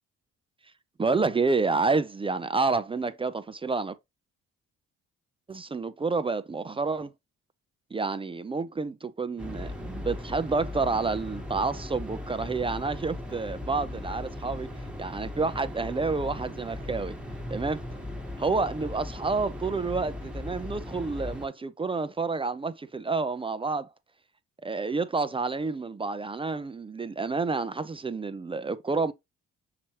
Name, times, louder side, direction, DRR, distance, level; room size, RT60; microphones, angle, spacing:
voice 1, 1.0-4.0 5.5-7.1 7.9-14.7 15.0-17.1 17.5-17.8 18.4-23.9 24.6-29.1, right 4 dB, 20° right, 0.4 m, -29 dB
sound 1, 9.4-21.5, left 1 dB, 5° right, 1.1 m, -38 dB
5.8 x 3.1 x 2.8 m
cardioid pair, 90°, 30 cm